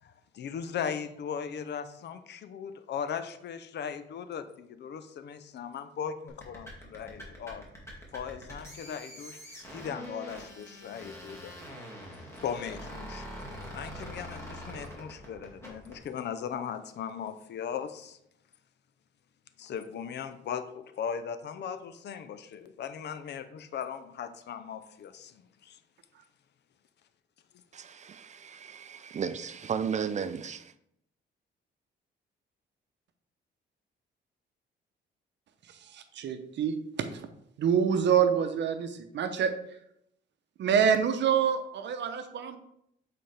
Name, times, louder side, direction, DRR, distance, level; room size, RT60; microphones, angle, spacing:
voice 1, 0.0-7.7 8.1-9.4 9.7-11.5 12.1-13.3 13.7-18.2 19.6-25.8, left 7 dB, 60° left, 0.6 m, -38 dB
sound 1, 6.3-16.0, equal, 15° left, 2.1 m, -44 dB
voice 2, 27.7-30.7, right 7 dB, 35° right, 0.4 m, -34 dB
voice 3, 35.6-37.3 37.6-39.6 40.6-42.6, right 7 dB, 65° right, 0.7 m, -27 dB
7.6 x 4.2 x 3.4 m
cardioid pair, 90°, 20 cm